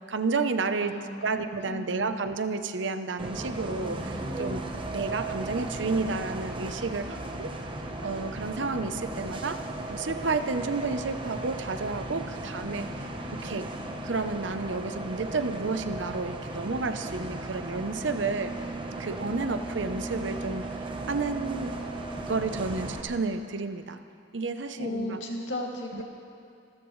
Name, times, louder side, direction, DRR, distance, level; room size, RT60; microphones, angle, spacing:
voice 1, 0.0-1.0 1.2-4.6 4.9-7.5 8.0-9.6 9.9-13.7 14.0-18.7 19.0-21.7 22.3-24.0 24.3-25.2 25.9-26.0, right 4 dB, 75° right, 9 dB, 0.7 m, -31 dB
voice 2, 0.8-2.2 24.8-26.0, left 1 dB, 80° left, -1 dB, 2.3 m, -36 dB
Bus, 3.2-23.0, right 2 dB, 25° right, 1.0 m, -36 dB
27.5 x 13.5 x 3.2 m, 2.4 s
head